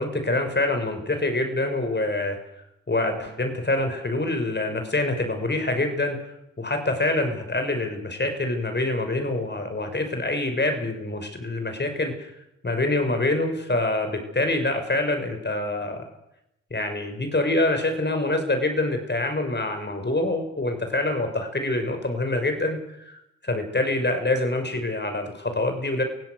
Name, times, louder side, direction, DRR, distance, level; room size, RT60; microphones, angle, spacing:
voice 1, 0.0-2.4 2.9-6.2 6.6-12.3 12.6-16.0 16.7-26.0, left 2 dB, 30° left, 6 dB, 6.1 m, -25 dB
29.0 x 16.5 x 6.6 m, 0.82 s
hypercardioid pair, 40°, 34 cm